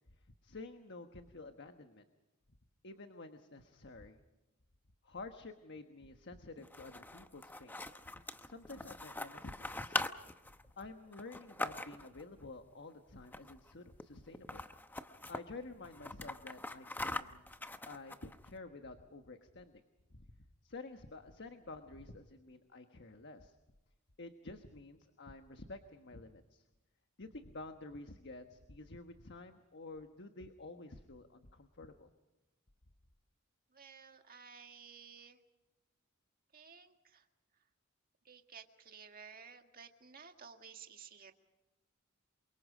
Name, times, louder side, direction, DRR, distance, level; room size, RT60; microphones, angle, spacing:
voice 1, 0.4-2.1 2.8-4.2 5.0-7.8 8.1-10.0 10.8-14.6 15.3-17.4 17.9-19.8 20.1-20.2 20.6-23.5 24.2-26.6 27.2-32.1, left 3 dB, 55° left, 7 dB, 1.3 m, -50 dB
sound 1, 6.6-12.2 13.2-13.7 14.0-14.1 14.3-15.4 15.8-18.5, left 2 dB, 10° left, 0.8 m, -42 dB
voice 2, 33.7-35.4 36.5-37.3 37.5-37.7 38.2-41.3, right 6 dB, 45° right, 5 dB, 1.8 m, -55 dB
28.5 x 24.0 x 5.0 m, 1.1 s
head